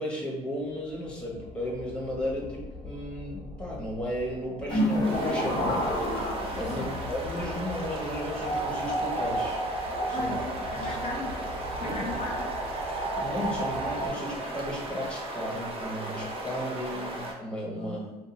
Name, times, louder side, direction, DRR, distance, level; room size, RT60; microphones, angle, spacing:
voice 1, 0.0-5.9 6.5-9.6 10.1-10.3 10.7-10.9 11.8-12.0 13.2-18.0, left 1 dB, 5° left, -4 dB, 1.2 m, -34 dB
sound 1, 0.8-14.1, right 1 dB, 85° right, 1.2 m, -35 dB
sound 2, 4.7-7.1, left 1 dB, 25° left, 0.8 m, -28 dB
sound 3, 5.0-17.3, right 1 dB, 35° right, 0.8 m, -36 dB
voice 2, 10.1-11.4 11.8-12.5 16.9-17.1 17.8-18.2, left 3 dB, 40° left, -1 dB, 0.4 m, -38 dB
2.7 x 2.5 x 3.9 m, 1.1 s
cardioid pair, 110°, 17 cm